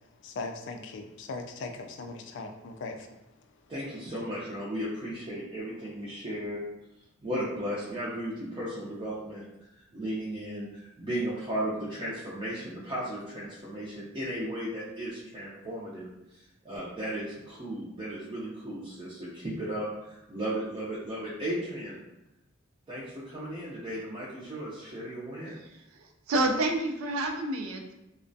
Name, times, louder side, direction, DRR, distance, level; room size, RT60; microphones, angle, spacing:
voice 1, 0.2-3.1, left 3 dB, 60° left, 5 dB, 0.3 m, -39 dB
voice 2, 3.7-6.6 7.2-9.4 9.7-22.0 22.9-25.6, right 1 dB, 25° right, -9 dB, 0.4 m, -35 dB
voice 3, 25.5-27.9, right 2 dB, 90° right, 3 dB, 0.4 m, -29 dB
2.3 x 2.1 x 2.6 m, 0.91 s
head